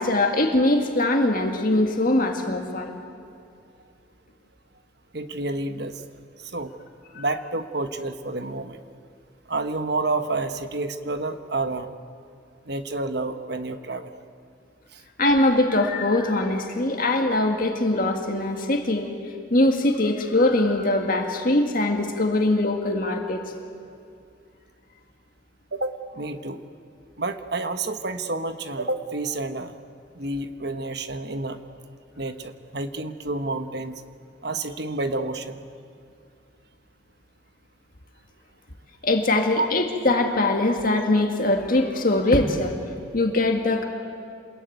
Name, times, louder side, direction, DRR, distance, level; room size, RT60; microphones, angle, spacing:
voice 1, 0.0-2.9 7.2-7.3 15.2-19.1 19.5-23.4 39.0-42.7 43.1-43.8, left 2 dB, 45° left, 3 dB, 2.0 m, -22 dB
voice 2, 5.1-6.0 6.4-6.7 7.1-8.8 9.5-11.9 12.6-14.1 14.9-15.0 25.7-26.6 27.2-29.8 30.1-31.6 32.2-34.0 34.4-35.6 39.6-39.7, right 2 dB, 55° right, 8 dB, 1.3 m, -29 dB
27.5 x 21.5 x 9.3 m, 2.4 s
head